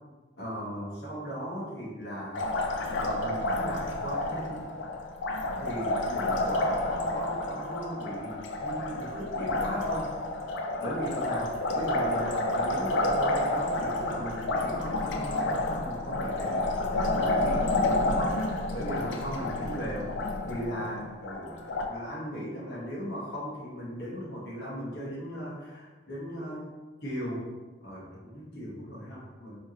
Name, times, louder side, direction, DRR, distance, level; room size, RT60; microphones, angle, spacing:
voice 1, 0.4-2.4 2.9-4.6 5.6-10.1 10.8-18.5 18.7-20.1 20.4-21.5 21.9-26.7 27.0-27.5 27.8-29.6, equal, 65° left, -6 dB, 1.1 m, -37 dB
Liquid, 2.3-21.9, left 2 dB, 85° left, 0.4 m, -30 dB
3.7 x 3.3 x 2.8 m, 1.3 s
head